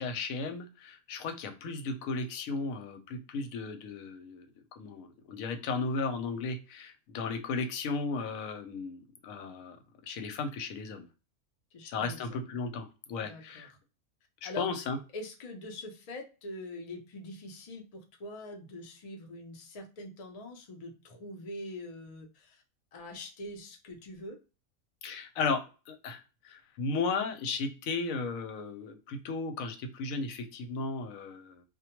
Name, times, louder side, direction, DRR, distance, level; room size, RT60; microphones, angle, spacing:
voice 1, 0.0-4.5 4.7-9.8 10.0-11.1 11.8-13.7 14.4-15.0 25.0-31.6, left 4 dB, 85° left, 6 dB, 1.0 m, -35 dB
voice 2, 11.7-12.6 13.2-13.7 14.4-14.7 15.1-22.6 22.9-24.4, left 1 dB, 50° left, 3 dB, 0.4 m, -44 dB
2.2 x 2.2 x 2.8 m, 0.32 s
omnidirectional pair, 1.4 m